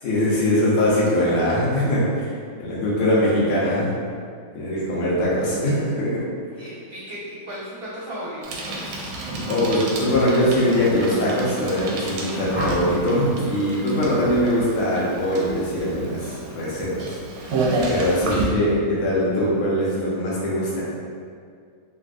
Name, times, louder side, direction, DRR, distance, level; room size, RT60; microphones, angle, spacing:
voice 1, 0.0-2.3 2.6-3.9 4.6-6.2 9.5-17.1 17.9-20.8, left 1 dB, 90° left, -6 dB, 1.7 m, -22 dB
voice 2, 6.5-9.1, equal, 20° left, -16 dB, 0.7 m, -36 dB
Bicycle, 8.4-18.5, right 2 dB, 80° right, 1.4 m, -30 dB
sound 1, 12.5-13.1 14.9-15.2 15.6-15.9, equal, 45° right, 1.2 m, -30 dB
3.8 x 2.5 x 2.3 m, 2.2 s
omnidirectional pair, 2.3 m